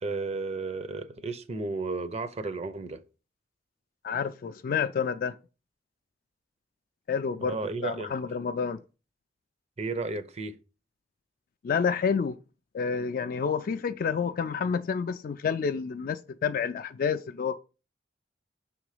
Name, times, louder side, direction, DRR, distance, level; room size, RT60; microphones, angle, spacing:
voice 1, 0.0-3.0 7.4-8.1 9.8-10.6, right 3 dB, 35° right, 0.6 m, -33 dB
voice 2, 4.0-5.4 7.1-8.8 11.6-12.4 12.7-17.6, left 6 dB, 50° left, 0.3 m, -29 dB
6.0 x 3.8 x 4.9 m
head